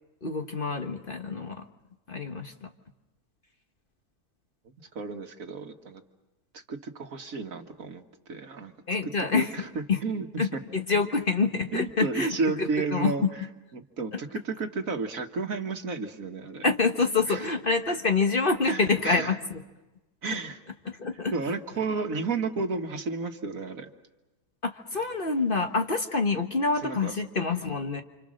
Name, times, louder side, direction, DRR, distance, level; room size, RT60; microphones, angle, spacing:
voice 1, 0.2-1.6 2.1-2.7 8.9-9.5 9.9-10.0 10.4-13.3 16.6-19.6 21.0-21.3 24.6-28.0, left 4 dB, 35° left, 5 dB, 1.3 m, -26 dB
voice 2, 4.6-6.0 6.5-8.0 8.3-8.7 9.3-10.6 11.7-13.5 13.7-16.7 17.3-17.5 18.6-19.4 20.2-20.6 21.1-23.9 26.8-27.2, right 4 dB, 65° right, 5 dB, 1.9 m, -32 dB
29.5 x 26.5 x 6.4 m, 1.1 s
omnidirectional pair, 1.6 m